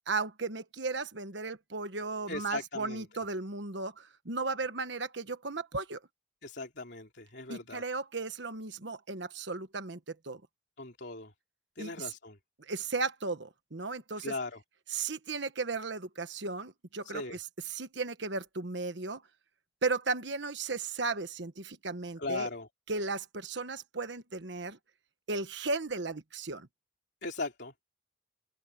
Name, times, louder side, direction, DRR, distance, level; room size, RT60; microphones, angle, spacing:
voice 1, 0.1-6.0 7.5-10.4 11.8-12.1 12.6-14.3 14.9-19.2 19.8-22.5 22.9-24.8 25.3-26.7, right 3 dB, 65° right, 1.3 m, -35 dB
voice 2, 2.3-3.0 6.4-7.8 10.8-11.3 11.8-12.4 14.2-14.6 17.0-17.4 22.2-22.7 27.2-27.7, left 2 dB, 60° left, 3.2 m, -38 dB
open air
head